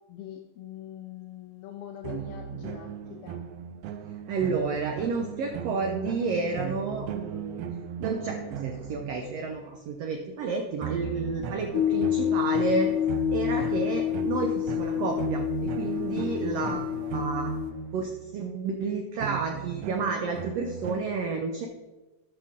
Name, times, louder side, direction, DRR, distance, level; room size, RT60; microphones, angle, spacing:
voice 1, 0.1-3.4 16.6-16.9, left 11 dB, 85° left, 4 dB, 1.4 m, -42 dB
sound 1, 2.0-9.7 10.8-18.3 19.2-21.0, right 8 dB, 90° right, 1.4 m, -37 dB
voice 2, 4.3-7.6 8.0-12.9 13.3-17.5 17.9-21.7, right 4 dB, 70° right, 3 dB, 1.5 m, -31 dB
sound 2, 11.7-17.7, left 11 dB, 65° left, 1.8 m, -28 dB
12.5 x 5.9 x 3.7 m, 1.1 s
omnidirectional pair, 3.6 m